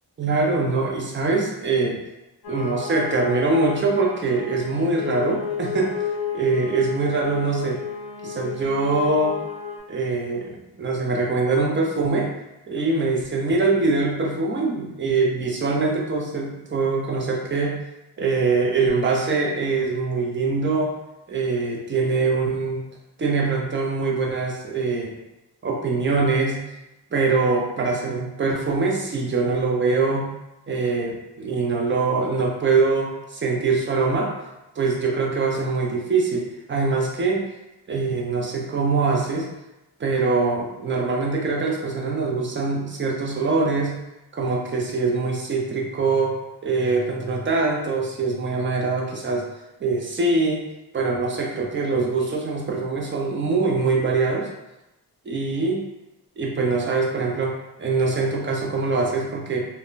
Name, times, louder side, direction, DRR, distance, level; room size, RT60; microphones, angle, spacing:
voice 1, 0.2-2.0 2.5-6.0 6.3-7.8 8.2-9.4 9.9-12.3 12.7-17.8 18.2-20.9 21.3-22.8 23.2-25.2 25.6-26.6 27.1-30.3 30.7-34.3 34.8-37.5 37.9-39.5 40.0-43.9 44.3-46.3 46.6-49.4 49.8-50.6 50.9-54.5 55.3-55.8 56.4-59.6, right 3 dB, 30° right, -1 dB, 0.4 m, -23 dB
sound 1, 2.4-9.8, left 7 dB, 60° left, 0.5 m, -32 dB
2.1 x 2.1 x 3.7 m, 0.96 s
wide cardioid pair, 150°, 42 cm